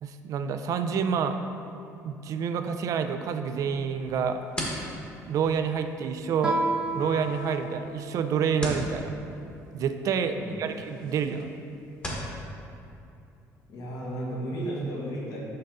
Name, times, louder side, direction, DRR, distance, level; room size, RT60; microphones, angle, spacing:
voice 1, 0.0-1.4 2.0-4.4 5.3-6.6 6.9-9.1 9.7-11.5, right 7 dB, 60° right, 8 dB, 0.4 m, -28 dB
sound 1, 4.0-12.3, equal, 15° left, 1.2 m, -40 dB
Guitar, 6.4-8.9, right 1 dB, 15° right, 0.7 m, -32 dB
voice 2, 10.4-10.7 13.7-15.4, right 1 dB, 65° left, -4 dB, 1.5 m, -34 dB
5.6 x 5.5 x 3.8 m, 2.6 s
cardioid pair, 110°, 7 cm